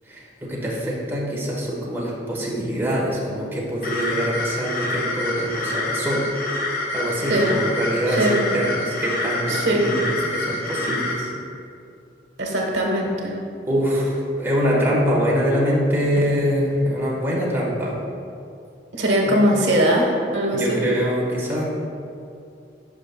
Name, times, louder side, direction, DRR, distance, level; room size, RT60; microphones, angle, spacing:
voice 1, 0.1-6.2 6.6-11.3 13.6-17.9 19.3-19.4 20.5-21.6, equal, 10° right, -5 dB, 1.1 m, -24 dB
sound 1, 3.8-11.2, left 2 dB, 50° left, 0.9 m, -27 dB
voice 2, 8.1-8.4 9.5-9.8 12.4-13.4 19.0-20.8, right 1 dB, 85° right, -1 dB, 1.1 m, -20 dB
11.0 x 5.3 x 2.2 m, 2.5 s
head